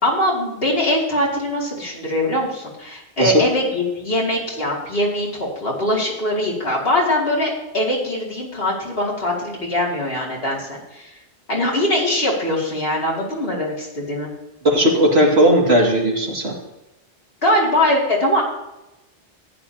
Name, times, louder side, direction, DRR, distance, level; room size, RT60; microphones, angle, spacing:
voice 1, 0.0-11.1 11.5-14.3 17.4-18.4, left 1 dB, 60° left, -3 dB, 2.9 m, -22 dB
voice 2, 14.6-16.5, right 1 dB, 65° right, -2 dB, 2.6 m, -16 dB
15.0 x 9.7 x 2.9 m, 0.93 s
omnidirectional pair, 1.1 m